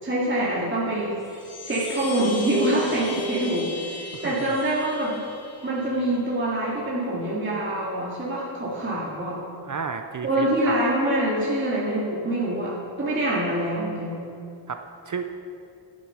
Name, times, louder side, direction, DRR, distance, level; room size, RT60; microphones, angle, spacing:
voice 1, 0.0-1.3 1.6-5.2 5.6-9.4 10.2-14.2, right 1 dB, 25° right, -7 dB, 2.2 m, -25 dB
sound 1, 1.1-6.2, left 4 dB, 65° left, 2.2 m, -39 dB
voice 2, 9.6-10.7 14.7-15.2, right 5 dB, 40° right, 6 dB, 0.6 m, -32 dB
10.5 x 9.2 x 5.7 m, 2.6 s
wide cardioid pair, 100°, 45 cm